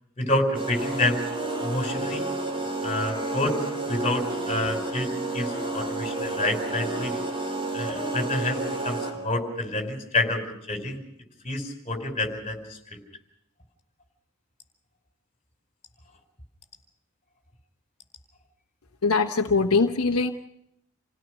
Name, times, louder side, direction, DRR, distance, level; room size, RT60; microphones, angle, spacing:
voice 1, 0.2-1.2 1.6-2.3 2.6-3.5 3.9-5.1 5.3-7.2 7.7-11.0 11.4-12.8, left 2 dB, 30° left, 4 dB, 4.9 m, -28 dB
sound 1, 0.5-9.3, right 2 dB, 25° right, 3.8 m, -30 dB
voice 2, 19.0-20.3, left 4 dB, 75° left, 3 dB, 1.2 m, -22 dB
28.0 x 17.0 x 6.4 m, 0.74 s
head